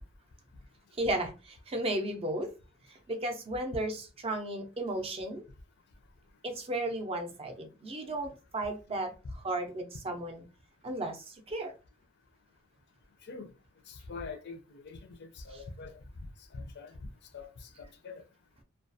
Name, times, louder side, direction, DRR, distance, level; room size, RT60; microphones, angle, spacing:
voice 1, 1.0-2.5 3.1-5.4 6.4-10.4 10.8-11.7, right 1 dB, 30° right, 0.5 m, -34 dB
voice 2, 13.9-16.0 16.5-16.9 17.3-18.2, left 4 dB, 55° left, 0.4 m, -44 dB
2.3 x 2.2 x 2.6 m
head